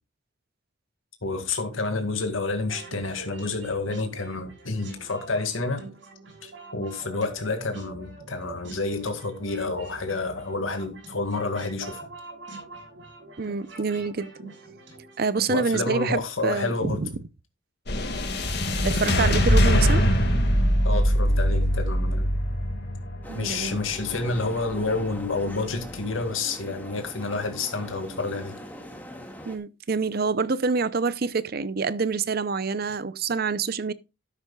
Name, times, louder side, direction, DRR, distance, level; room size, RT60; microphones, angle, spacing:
voice 1, 1.2-5.9 6.4-12.0 15.5-17.0 20.8-22.3 23.3-28.6, left 3 dB, 85° left, 2.1 m, -29 dB
sound 1, 2.6-15.4, right 2 dB, 65° right, 6.3 m, -44 dB
voice 2, 13.4-14.3 15.2-17.1 18.8-20.1 23.3-23.8 29.4-33.9, right 4 dB, 50° right, 0.6 m, -27 dB
sound 2, 17.9-26.3, equal, 55° left, 2.1 m, -23 dB
sound 3, 23.2-29.6, equal, 10° left, 1.8 m, -42 dB
12.5 x 9.9 x 2.3 m
head